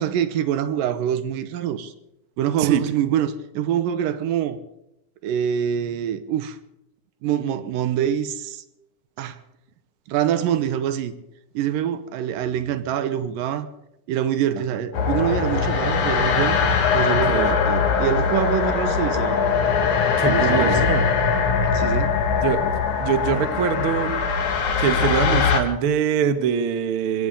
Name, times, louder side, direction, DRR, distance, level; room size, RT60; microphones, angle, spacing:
voice 1, 0.0-1.9 2.4-4.6 5.2-6.6 7.2-8.6 9.2-9.4 10.1-11.1 11.5-13.7 14.1-16.6 16.9-19.4 20.2-20.8 21.7-22.2, right 9 dB, 85° right, 2.6 m, -25 dB
sound 1, 14.9-25.6, left 5 dB, 60° left, 3.1 m, -21 dB
voice 2, 20.2-21.0 22.4-22.6 23.0-24.2 24.8-27.3, right 7 dB, 60° right, 1.4 m, -23 dB
21.0 x 17.0 x 3.8 m
omnidirectional pair, 3.9 m